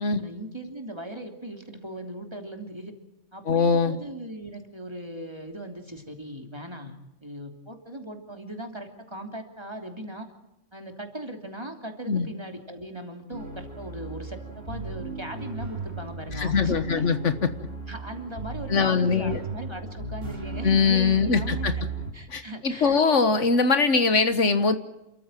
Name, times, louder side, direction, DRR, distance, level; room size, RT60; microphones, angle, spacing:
voice 1, 0.2-2.9 3.3-10.3 10.7-17.1 17.9-21.8 22.1-23.0 23.6-23.9, right 1 dB, 20° right, 4 dB, 3.1 m, -39 dB
voice 2, 3.5-4.0 12.1-12.3 16.4-17.5 18.7-19.4 20.6-21.7 22.3-24.8, left 5 dB, 70° left, 10 dB, 1.7 m, -22 dB
sound 1, 13.3-22.1, right 3 dB, 50° right, 3.8 m, -36 dB
28.5 x 14.0 x 9.1 m, 0.92 s
omnidirectional pair, 1.3 m